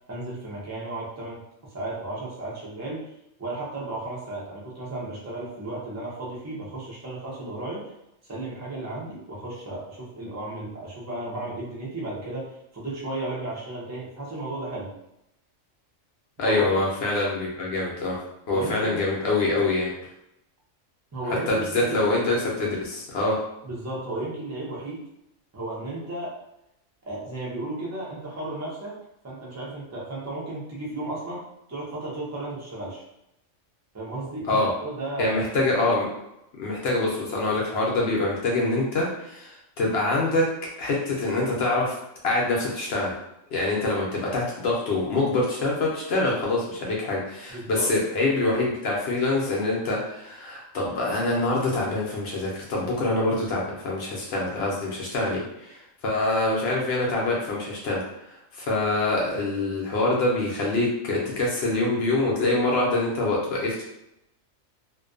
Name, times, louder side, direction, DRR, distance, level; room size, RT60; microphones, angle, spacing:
voice 1, 0.0-1.4 1.7-3.1 3.4-7.8 8.3-14.9 16.4-16.7 18.5-19.1 21.1-22.0 23.6-25.0 25.5-26.3 27.1-29.0 29.2-33.0 33.9-35.4 47.5-47.9, right 2 dB, 25° right, -5 dB, 0.3 m, -34 dB
voice 2, 16.4-18.2 18.5-19.9 21.5-23.4 34.5-34.7 35.2-36.1 36.6-40.5 40.8-41.9 42.2-43.1 43.5-63.8, left 2 dB, 65° left, -3 dB, 0.7 m, -25 dB
2.5 x 2.2 x 2.4 m, 0.84 s
omnidirectional pair, 1.3 m